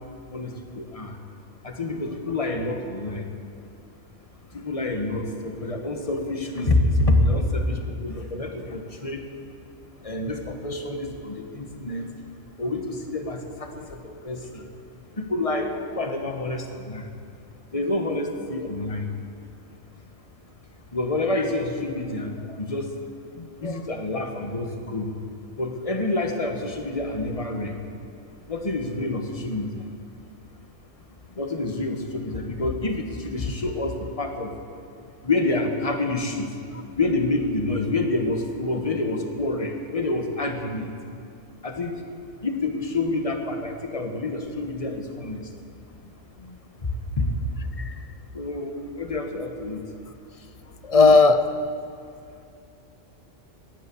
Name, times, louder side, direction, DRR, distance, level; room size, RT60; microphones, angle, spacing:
voice 1, 0.3-1.2 1.6-3.3 4.5-9.2 10.0-12.1 12.6-14.7 15.2-17.1 17.7-19.1 20.9-22.9 23.6-25.1 25.6-27.8 28.5-29.8 31.4-34.5 35.2-36.5 37.0-40.9 41.6-41.9 42.4-45.4 47.2-47.3 48.3-49.8, left 2 dB, 30° left, 4 dB, 1.4 m, -27 dB
voice 2, 23.4-23.9 46.4-46.6 47.8-47.9 50.8-51.5, left 4 dB, 45° left, 10 dB, 0.5 m, -19 dB
17.0 x 11.0 x 7.0 m, 2.5 s
omnidirectional pair, 1.3 m